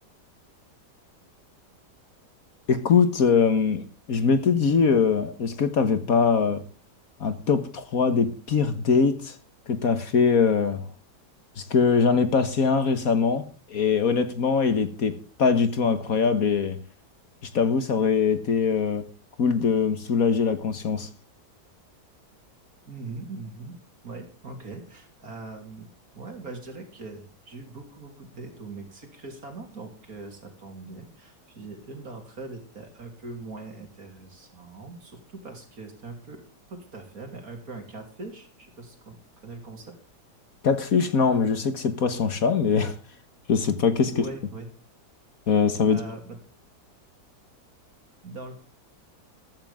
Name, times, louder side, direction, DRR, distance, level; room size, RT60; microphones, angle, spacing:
voice 1, 2.7-3.8 4.1-6.6 7.2-9.3 9.7-10.9 11.6-16.8 17.5-19.0 19.4-21.1 40.6-43.0 43.5-44.1 45.5-46.0, left 5 dB, 55° left, 11 dB, 1.6 m, -22 dB
voice 2, 22.9-23.8 24.0-25.9 26.1-36.4 36.7-39.2 39.4-40.0 44.1-44.7 45.9-46.4 48.2-48.5, right 3 dB, 55° right, 4 dB, 3.6 m, -41 dB
15.0 x 13.0 x 3.6 m, 0.39 s
omnidirectional pair, 1.9 m